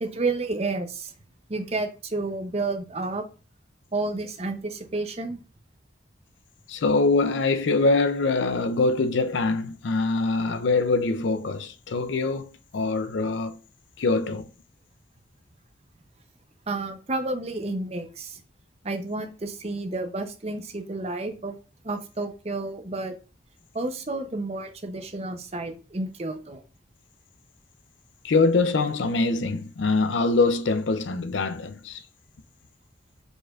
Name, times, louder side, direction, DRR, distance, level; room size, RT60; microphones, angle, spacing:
voice 1, 0.0-1.1 1.5-3.2 3.9-5.4 16.7-18.4 18.8-21.5 21.8-23.1 23.7-26.6, right 2 dB, 35° right, 0.7 m, -30 dB
voice 2, 6.7-13.6 14.0-14.5 28.2-32.0, left 3 dB, 75° left, 0.5 m, -24 dB
4.8 x 4.3 x 2.4 m
head